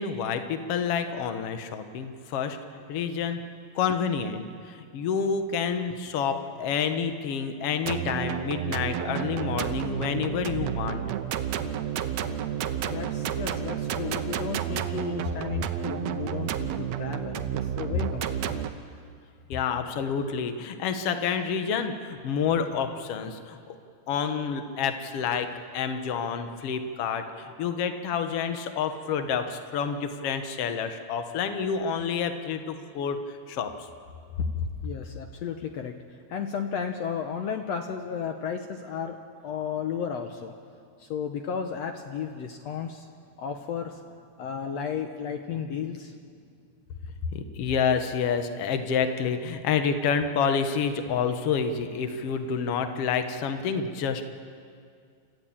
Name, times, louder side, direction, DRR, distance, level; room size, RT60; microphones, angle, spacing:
voice 1, 0.0-2.6 2.9-3.4 3.7-11.0 13.4-13.5 19.5-23.6 24.1-25.5 25.7-27.2 27.6-33.2 33.5-33.7 47.3-54.2, left 6 dB, 60° left, 8 dB, 1.6 m, -28 dB
sound 1, 7.8-18.7, right 10 dB, 85° right, 1.5 m, -31 dB
voice 2, 12.8-17.5 17.8-18.7 34.8-35.9 36.3-40.5 41.0-43.1 43.4-44.0 44.4-46.1, left 7 dB, 75° left, 5 dB, 1.5 m, -34 dB
29.5 x 14.0 x 8.7 m, 2.2 s
omnidirectional pair, 4.2 m